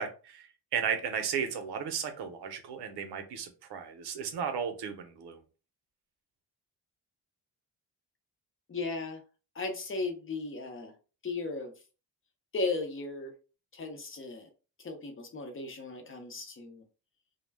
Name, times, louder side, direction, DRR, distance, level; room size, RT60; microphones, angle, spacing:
voice 1, 0.0-5.4, right 7 dB, 90° right, 7 dB, 0.7 m, -35 dB
voice 2, 8.7-9.2 9.5-10.9 11.2-11.7 12.5-13.3 13.7-14.5 14.8-16.8, left 3 dB, 35° left, 4 dB, 0.6 m, -36 dB
2.2 x 2.1 x 3.3 m, 0.34 s
cardioid pair, 130°, 38 cm